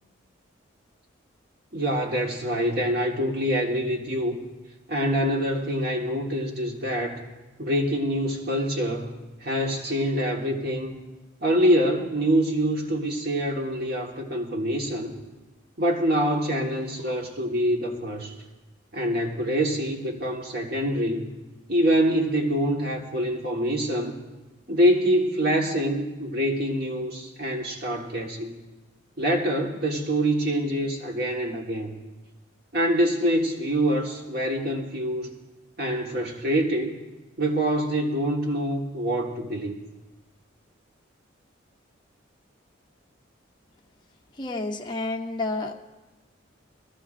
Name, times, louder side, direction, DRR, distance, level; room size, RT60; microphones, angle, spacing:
voice 1, 1.7-4.4 4.9-7.2 7.6-9.1 9.4-10.9 11.4-15.1 15.8-18.3 18.9-21.3 21.7-24.2 24.7-28.5 29.2-32.0 32.7-35.3 35.8-36.9 37.4-39.8, equal, 50° right, 0 dB, 1.4 m, -25 dB
voice 2, 44.4-45.7, left 2 dB, 25° left, 0 dB, 0.9 m, -30 dB
23.0 x 13.5 x 2.5 m, 1.1 s
head